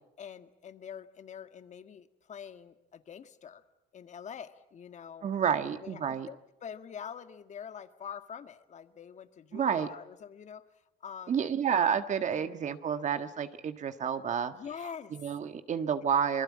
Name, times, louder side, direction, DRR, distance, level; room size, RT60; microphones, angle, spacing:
voice 1, 0.2-3.6 3.9-10.7 11.0-11.4 12.3-12.5 14.5-15.2, left 7 dB, 45° left, 9 dB, 1.7 m, -45 dB
voice 2, 5.2-6.3 9.5-9.9 11.3-14.5 15.1-16.4, right 7 dB, 45° right, 9 dB, 1.6 m, -30 dB
27.0 x 21.5 x 8.6 m, 0.89 s
cardioid pair, 110°, 17 cm